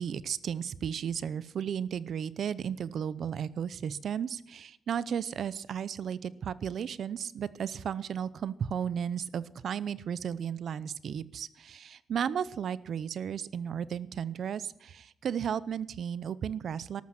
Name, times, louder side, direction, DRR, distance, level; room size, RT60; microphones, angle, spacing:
voice 1, 0.0-17.0, right 8 dB, 70° right, 18 dB, 0.7 m, -34 dB
13.5 x 12.0 x 6.0 m, 0.75 s
cardioid pair, 115°, 0 cm